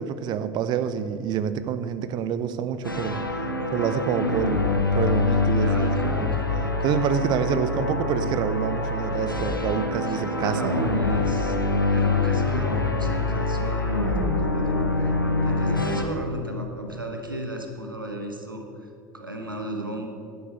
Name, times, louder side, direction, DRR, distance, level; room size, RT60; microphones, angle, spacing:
voice 1, 0.0-3.2 3.7-6.4 6.8-10.8, right 8 dB, 40° right, 12 dB, 0.7 m, -27 dB
sound 1, 2.8-16.0, left 3 dB, 90° left, 0.8 m, -25 dB
voice 2, 5.6-7.3 10.1-15.1 15.4-18.9 19.1-20.1, equal, 85° right, 3 dB, 1.1 m, -34 dB
11.0 x 8.0 x 6.6 m, 2.5 s
figure-of-eight pair, 70°, 11 cm